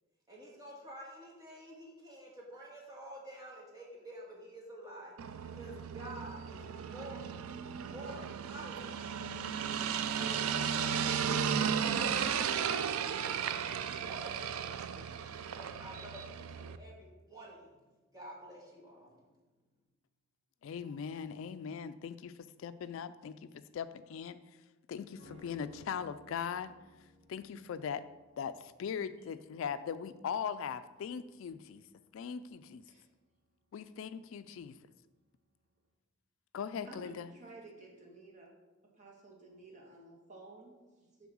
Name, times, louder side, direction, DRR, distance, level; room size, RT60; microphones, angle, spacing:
voice 1, 0.3-7.4 7.8-9.1 9.6-9.8 10.1-11.1 11.5-14.4 14.9-17.7 18.1-19.1, right 1 dB, 20° right, -3 dB, 1.7 m, -50 dB
sound 1, 5.2-16.8, right 7 dB, 85° right, 0.4 m, -35 dB
voice 2, 20.6-26.7 27.3-28.1 28.4-31.9 32.1-32.8 33.7-34.8 36.5-37.3, left 7 dB, 65° left, 13 dB, 0.3 m, -40 dB
sound 2, 25.2-34.6 34.9-35.0, left 1 dB, 55° right, 1.7 m, -61 dB
voice 3, 36.8-38.5 38.9-41.3, right 2 dB, 35° right, -2 dB, 1.5 m, -53 dB
7.1 x 3.8 x 6.2 m, 1.2 s
head